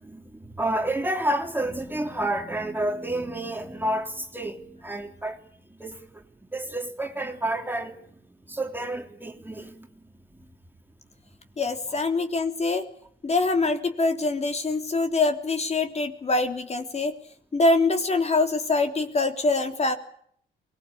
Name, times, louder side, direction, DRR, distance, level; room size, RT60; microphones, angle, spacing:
voice 1, 0.0-5.4 5.8-6.2 6.5-9.9, right 1 dB, 10° right, 3.1 m, -30 dB
voice 2, 11.6-12.9 13.2-17.1 17.5-19.9, left 3 dB, 35° left, 3.3 m, -24 dB
24.0 x 20.0 x 8.6 m
cardioid pair, 90°, 20 cm